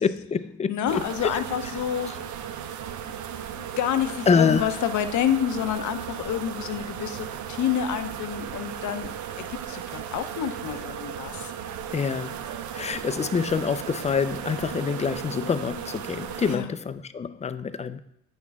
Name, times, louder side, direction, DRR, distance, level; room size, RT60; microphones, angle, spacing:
voice 1, 0.0-1.1 1.3-1.4 2.1-2.2 4.3-4.7 11.9-12.4 12.7-18.0, left 6 dB, 25° left, 0.4 m, -26 dB
voice 2, 0.7-2.2 3.5-9.1 9.5-11.5 16.5-16.7, left 9 dB, 75° left, 0.7 m, -28 dB
sound 1, 0.9-16.6, right 9 dB, 75° right, 0.6 m, -36 dB
8.7 x 6.5 x 3.5 m
cardioid pair, 90°, 30 cm